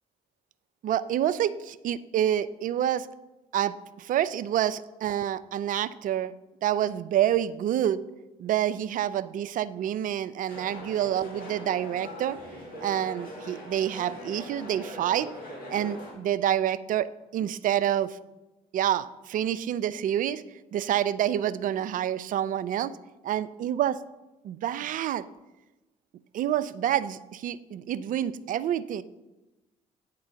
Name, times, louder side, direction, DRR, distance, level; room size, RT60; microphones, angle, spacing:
voice 1, 0.8-3.1 3.5-6.3 6.6-8.0 8.4-12.4 12.8-15.3 15.7-17.1 17.3-18.2 18.7-20.4 20.7-22.9 23.2-24.0 24.4-25.2 26.3-29.0, right 11 dB, 55° right, 15 dB, 0.4 m, -27 dB
sound 1, 10.5-16.1, equal, 60° left, 2.1 m, -41 dB
8.9 x 3.8 x 5.7 m, 1.0 s
hypercardioid pair, 60°, 16 cm